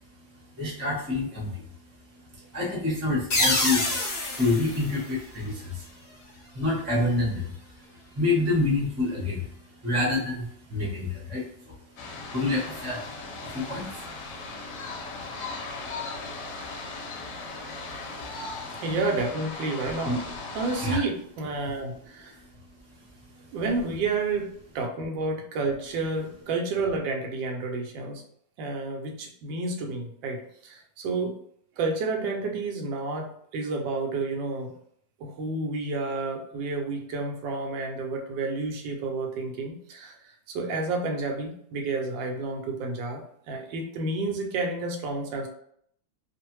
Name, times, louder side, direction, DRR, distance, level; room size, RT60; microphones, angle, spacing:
voice 1, 0.6-1.6 2.5-3.9 4.3-5.9 6.5-7.5 8.1-9.5 9.8-11.7 12.3-13.0 13.4-14.0 15.2-15.3 18.6-18.7 20.0-20.2 20.8-21.0, left 2 dB, 15° right, -5 dB, 0.6 m, -27 dB
sound 1, 3.3-5.9, left 1 dB, 45° left, 0.7 m, -27 dB
sound 2, 12.0-21.0, left 3 dB, 75° left, 1.2 m, -38 dB
voice 2, 18.8-20.2 20.5-22.4 23.5-28.2 28.6-31.3 31.8-34.7 35.2-40.2 40.5-43.2 43.5-45.5, right 3 dB, 80° right, 2 dB, 1.3 m, -30 dB
3.1 x 2.1 x 3.0 m, 0.68 s
omnidirectional pair, 2.0 m